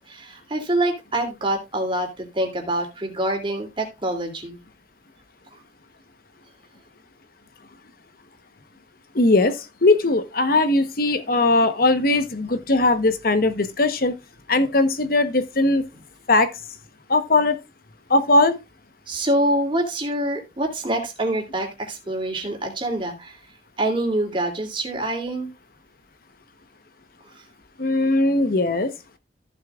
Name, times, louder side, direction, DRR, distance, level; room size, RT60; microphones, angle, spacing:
voice 1, 0.0-4.6 19.1-23.3 23.8-25.5, right 1 dB, 30° right, 2.8 m, -25 dB
voice 2, 9.1-14.1 14.5-15.8 16.3-16.5 17.1-17.6 18.1-18.6 27.8-28.9, left 2 dB, 55° left, 1.1 m, -19 dB
14.5 x 7.4 x 2.4 m
head